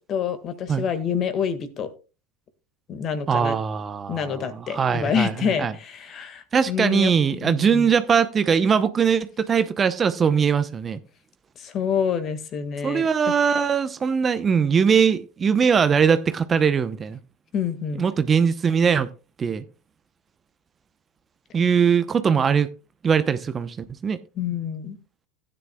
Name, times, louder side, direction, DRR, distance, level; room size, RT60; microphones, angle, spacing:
voice 1, 0.1-1.9 2.9-3.6 4.1-7.9 11.6-13.3 17.5-18.0 24.4-25.0, left 7 dB, 40° left, 11 dB, 1.7 m, -27 dB
voice 2, 3.3-5.7 6.5-11.0 12.8-17.2 18.0-19.1 19.4-19.6 21.5-22.7 23.0-24.2, right 6 dB, 25° right, 12 dB, 0.7 m, -21 dB
15.5 x 10.0 x 2.3 m, 0.32 s
hypercardioid pair, 85°, 0 cm